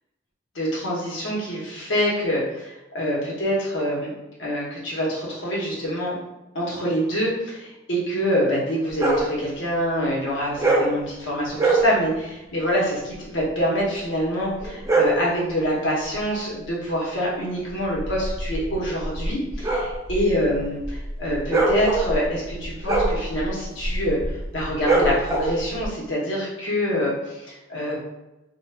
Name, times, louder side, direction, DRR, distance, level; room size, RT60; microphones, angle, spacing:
voice 1, 0.5-4.1 4.4-6.1 6.5-28.0, equal, 70° left, -5 dB, 1.1 m, -25 dB
sound 1, 8.9-9.3 10.5-11.0 11.5-11.9 14.6-15.3 17.8-25.9, right 2 dB, 15° right, 0.4 m, -23 dB
2.5 x 2.4 x 3.3 m, 0.99 s
head